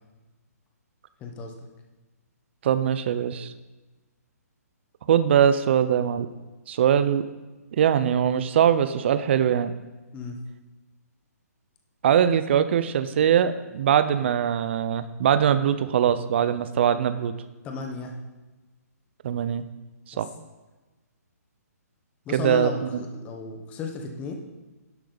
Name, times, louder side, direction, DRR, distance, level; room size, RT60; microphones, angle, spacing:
voice 1, 1.2-1.7 10.1-10.4 17.6-18.2 20.1-20.2 22.2-24.3, left 4 dB, 15° left, 3 dB, 1.2 m, -34 dB
voice 2, 2.6-3.5 5.1-6.3 6.7-7.2 7.8-9.7 12.0-17.3 19.2-19.6 20.2-20.3 22.3-22.7, right 9 dB, 45° right, 12 dB, 0.6 m, -22 dB
12.0 x 8.6 x 4.0 m, 1.2 s
hypercardioid pair, 160°, 9 cm